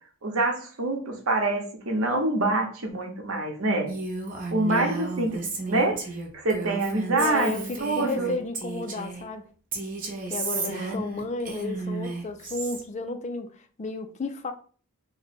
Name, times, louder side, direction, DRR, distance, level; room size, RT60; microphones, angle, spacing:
voice 1, 0.2-3.9 4.5-6.0 6.3-7.5 7.8-8.4 10.5-11.0, right 2 dB, 70° right, 0.9 m, -26 dB
Female speech woman speaking, 3.9-9.2 9.7-12.8, right 3 dB, 40° right, 0.8 m, -33 dB
voice 2, 7.1-9.4 10.3-14.5, left 3 dB, 30° left, 0.3 m, -33 dB
3.0 x 2.1 x 4.1 m
head